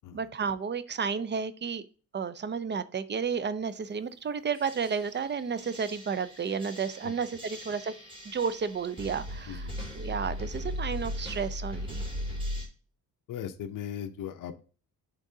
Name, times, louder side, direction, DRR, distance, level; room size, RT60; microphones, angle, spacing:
voice 1, 0.1-1.9 2.1-7.9 8.3-9.7 9.9-12.0, right 6 dB, 30° right, 14 dB, 0.5 m, -32 dB
sound 1, 4.5-12.7, left 1 dB, 15° right, 2.7 m, -38 dB
voice 2, 13.3-14.8, left 9 dB, 60° left, 7 dB, 0.7 m, -38 dB
11.0 x 3.7 x 2.7 m, 0.38 s
cardioid pair, 110°, 35 cm